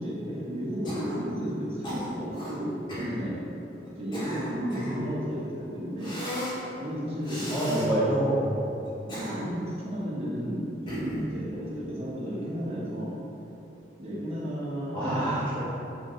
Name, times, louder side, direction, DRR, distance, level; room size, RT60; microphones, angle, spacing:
voice 1, 0.0-3.6 3.9-6.2 6.8-7.5 7.9-8.1 9.1-13.2 14.0-15.4, equal, 30° right, -6 dB, 1.5 m, -33 dB
Cough, 0.8-1.3 1.8-2.5 2.9-3.1 3.8-5.0 6.0-6.6 7.2-7.9 8.8-9.7 10.9-11.3, equal, 25° left, 1.6 m, -36 dB
voice 2, 4.9-5.3 7.5-8.4 14.9-15.6, right 1 dB, 10° left, -12 dB, 1.2 m, -27 dB
7.4 x 4.8 x 4.0 m, 2.9 s
head